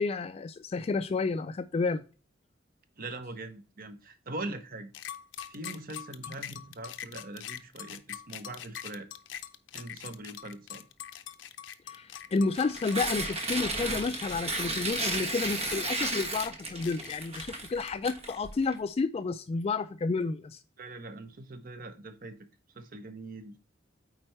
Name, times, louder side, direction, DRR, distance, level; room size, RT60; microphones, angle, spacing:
voice 1, 0.0-2.0 11.9-20.6, left 4 dB, 35° left, 0.3 m, -31 dB
voice 2, 3.0-4.9 5.5-9.1 9.7-10.8 20.8-22.4 22.7-23.6, right 2 dB, 50° right, 0.9 m, -42 dB
sound 1, 4.9-18.4, left 10 dB, 75° left, 0.6 m, -43 dB
Tearing, 12.5-18.7, right 2 dB, 35° right, 1.3 m, -34 dB
8.9 x 4.3 x 3.2 m
head